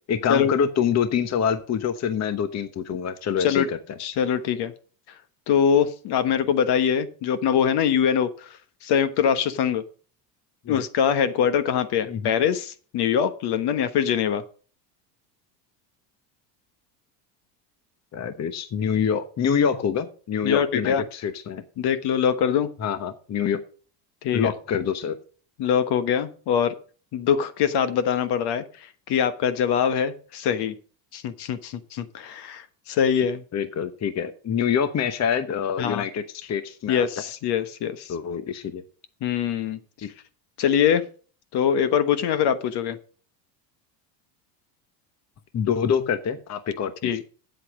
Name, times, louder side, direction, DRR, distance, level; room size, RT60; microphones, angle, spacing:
voice 1, 0.1-3.8 10.6-10.8 12.1-12.3 18.1-21.6 22.8-23.6 24.3-25.1 33.5-37.1 38.1-38.8 40.0-40.1 45.5-46.9, left 7 dB, 35° left, 11 dB, 1.0 m, -26 dB
voice 2, 4.0-4.7 5.5-9.8 10.7-14.4 20.4-21.0 21.8-22.7 24.2-24.5 25.6-26.7 27.1-28.6 29.1-30.7 31.1-33.4 35.8-36.0 36.9-38.1 39.2-39.8 40.6-41.1 41.5-43.0 47.0-47.2, left 8 dB, 55° left, 11 dB, 1.3 m, -23 dB
8.2 x 8.1 x 6.3 m, 0.40 s
supercardioid pair, 95°, 49 cm